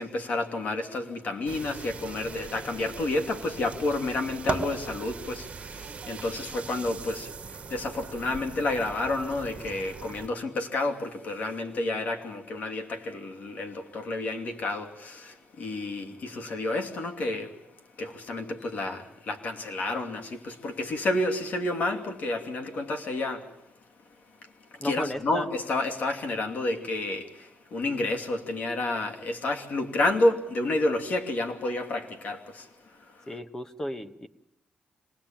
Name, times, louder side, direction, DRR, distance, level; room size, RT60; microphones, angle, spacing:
voice 1, 0.0-17.7 18.0-23.6 24.4-33.4, left 2 dB, 55° left, 2.7 m, -30 dB
sound 1, 1.5-10.3, right 5 dB, 40° right, 1.7 m, -39 dB
voice 2, 24.8-25.5 33.3-34.3, equal, 15° left, 1.2 m, -34 dB
26.5 x 19.5 x 8.9 m
cardioid pair, 135°, 3 cm